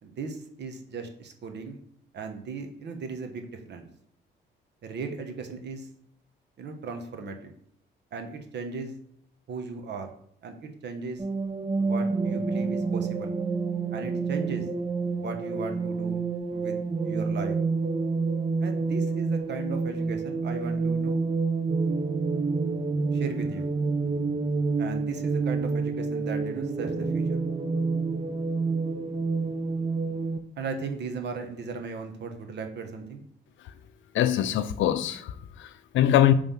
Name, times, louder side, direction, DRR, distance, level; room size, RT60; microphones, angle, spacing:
voice 1, 0.0-1.8 2.1-3.9 4.8-5.9 6.6-7.5 8.1-8.9 9.5-10.1 10.4-10.5 10.8-11.2 11.8-13.3 13.9-14.7 15.1-16.2 16.5-16.8 17.0-17.6 18.6-21.2 23.1-23.7 24.8-27.4 30.6-33.2, right 4 dB, 60° right, 1.1 m, -37 dB
sound 1, 11.2-30.4, right 4 dB, 25° right, 0.6 m, -28 dB
voice 2, 34.1-36.3, left 11 dB, 75° left, 0.5 m, -23 dB
5.5 x 3.4 x 5.6 m
cardioid pair, 90°, 20 cm